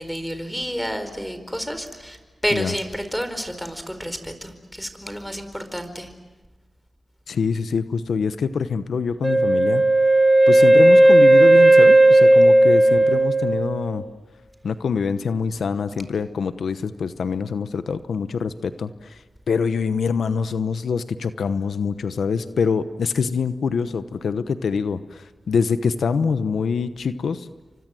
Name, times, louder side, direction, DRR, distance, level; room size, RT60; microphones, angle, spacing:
voice 1, 0.0-6.1, equal, ahead, 9 dB, 4.7 m, -30 dB
voice 2, 7.3-9.8 10.5-14.0 14.6-19.2 19.5-27.5, left 5 dB, 85° left, 12 dB, 1.0 m, -25 dB
Wind instrument woodwind instrument, 9.2-14.1, right 1 dB, 15° right, 3.6 m, -14 dB
30.0 x 25.0 x 7.8 m, 1.2 s
cardioid pair, 50°, 0 cm